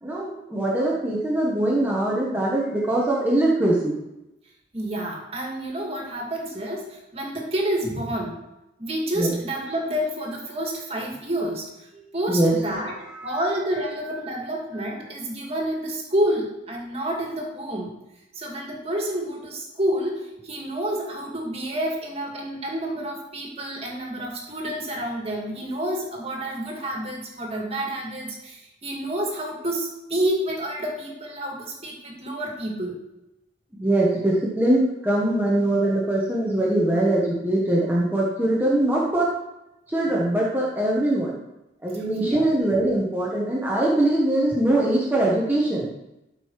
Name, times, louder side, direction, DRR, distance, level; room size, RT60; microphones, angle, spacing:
voice 1, 0.0-4.0 9.1-9.4 12.3-13.4 33.8-39.3 39.9-41.4 41.8-45.9, right 1 dB, 10° right, -5 dB, 1.4 m, -22 dB
voice 2, 4.7-8.4 8.8-11.7 12.1-17.9 18.3-33.0 42.2-42.5, right 1 dB, 30° right, -1 dB, 2.2 m, -29 dB
13.0 x 5.5 x 4.8 m, 0.94 s
head